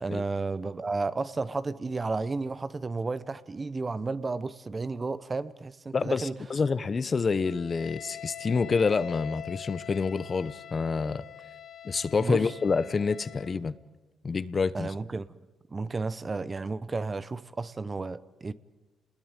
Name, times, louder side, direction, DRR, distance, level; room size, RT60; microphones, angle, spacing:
voice 1, 0.0-6.3 12.2-12.4 14.7-15.4 15.7-18.5, right 3 dB, 30° right, 0.9 m, -32 dB
voice 2, 5.9-11.2 11.8-13.7 14.2-14.9, left 4 dB, 35° left, 1.0 m, -27 dB
Wind instrument woodwind instrument, 7.4-13.6, left 10 dB, 60° left, 2.1 m, -44 dB
28.5 x 20.5 x 9.1 m
cardioid pair, 90°, 0 cm